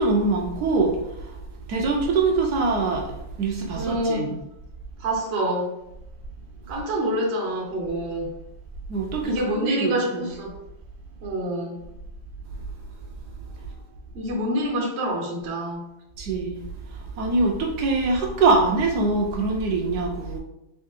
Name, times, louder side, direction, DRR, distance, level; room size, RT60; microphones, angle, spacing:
voice 1, 0.0-1.4 1.7-4.4 8.9-10.2 16.2-20.4, right 3 dB, 80° right, 1 dB, 0.9 m, -24 dB
voice 2, 3.7-4.4 5.0-5.8 6.7-8.3 9.2-10.6 11.2-11.8 14.1-15.8, right 1 dB, 50° right, -1 dB, 0.8 m, -27 dB
3.7 x 3.2 x 3.5 m, 0.86 s
omnidirectional pair, 2.3 m